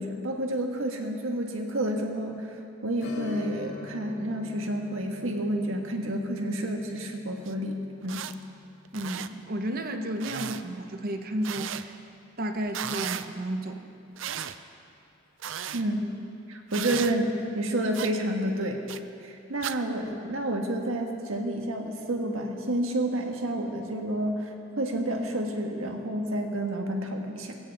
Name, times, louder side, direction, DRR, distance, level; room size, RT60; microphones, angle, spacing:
voice 1, 0.0-2.6 2.8-8.2 15.7-16.1 16.5-18.8 19.2-27.6, right 1 dB, 90° right, 2 dB, 1.6 m, -30 dB
Strum, 3.0-12.2 12.5-12.6 15.2-15.3 15.8-15.9, left 3 dB, 70° left, 3.7 m, -47 dB
sound 1, 7.4-7.5 8.0-8.3 8.8-9.3 10.2-10.6 11.4-11.8 12.7-13.3 14.2-14.6 15.4-15.8 16.7-17.1 17.9-18.1 18.9-19.0 19.6-19.8, right 9 dB, 65° right, 0.5 m, -35 dB
voice 2, 8.9-12.0 12.4-13.9, right 1 dB, 45° right, 6 dB, 1.0 m, -32 dB
22.0 x 16.0 x 3.5 m, 2.7 s
head